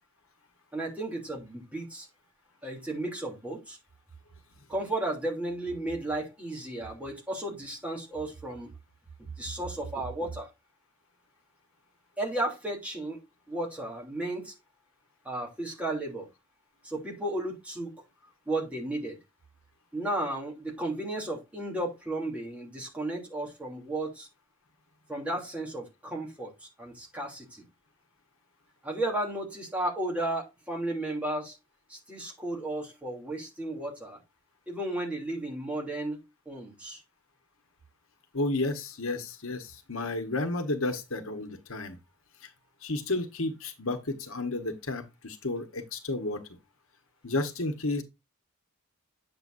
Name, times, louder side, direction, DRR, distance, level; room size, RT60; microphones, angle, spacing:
voice 1, 0.7-2.1 2.6-3.8 4.7-8.7 9.2-10.5 12.2-13.2 13.5-14.5 15.2-16.3 16.8-17.9 18.5-19.2 19.9-24.3 25.1-27.6 28.8-31.6 31.9-34.2 34.7-36.2 36.4-37.0, right 1 dB, 5° right, 3.0 m, -34 dB
voice 2, 38.3-42.0 42.8-46.4 47.2-48.0, left 2 dB, 70° left, 1.4 m, -32 dB
9.0 x 7.3 x 2.6 m
head